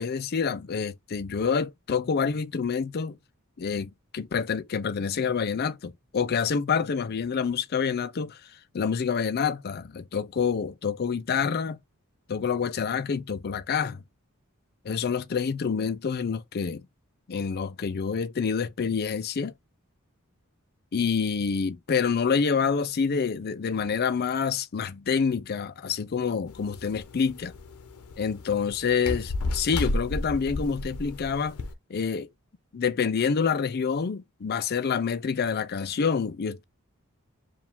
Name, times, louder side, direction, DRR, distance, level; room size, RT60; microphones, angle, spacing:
voice 1, 0.0-3.2 3.6-11.8 12.3-14.0 14.8-16.9 17.3-19.5 20.9-27.5 28.2-31.6 31.9-32.3 32.7-36.6, left 6 dB, 45° left, 0.4 m, -27 dB
sound 1, 26.5-31.7, left 2 dB, 90° left, 0.7 m, -33 dB
4.7 x 2.4 x 3.5 m
head